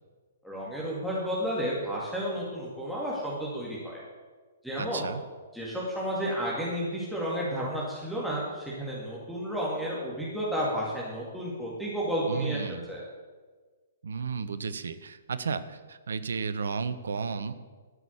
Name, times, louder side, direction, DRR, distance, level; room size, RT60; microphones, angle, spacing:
voice 1, 0.4-4.0 4.6-5.0 5.5-12.6 12.9-13.0, equal, ahead, -7 dB, 2.3 m, -32 dB
voice 2, 4.8-5.2 12.3-12.8 14.0-17.5, right 5 dB, 65° right, 13 dB, 0.7 m, -33 dB
12.5 x 6.1 x 7.2 m, 1.4 s
figure-of-eight pair, 120°, 0 cm